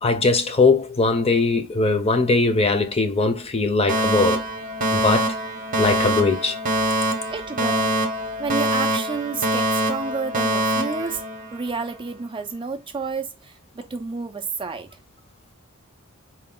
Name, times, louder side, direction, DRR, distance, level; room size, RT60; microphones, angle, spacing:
voice 1, 0.0-4.4 4.9-5.3 5.8-6.6, left 3 dB, 25° left, 0.6 m, -20 dB
Alarm, 3.9-11.9, right 1 dB, 40° right, 0.8 m, -24 dB
voice 2, 7.3-8.0 8.4-11.2 11.5-14.9, right 4 dB, 25° right, 0.4 m, -30 dB
4.4 x 2.2 x 3.7 m
head